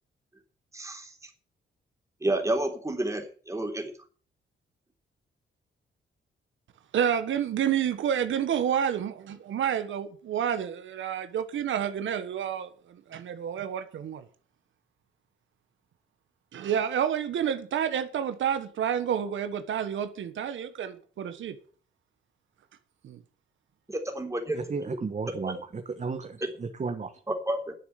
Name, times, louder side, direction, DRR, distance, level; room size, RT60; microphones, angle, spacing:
voice 1, 0.7-1.1 2.2-3.9 23.9-24.6 24.8-25.0 25.3-25.5 27.3-27.7, right 1 dB, 15° right, 3.6 m, -30 dB
voice 2, 6.9-14.2 16.5-21.6 23.0-23.2, right 9 dB, 80° right, 1.4 m, -29 dB
voice 3, 24.5-27.1, right 4 dB, 35° right, 1.6 m, -34 dB
10.5 x 7.6 x 9.3 m
cardioid pair, 100°, 20 cm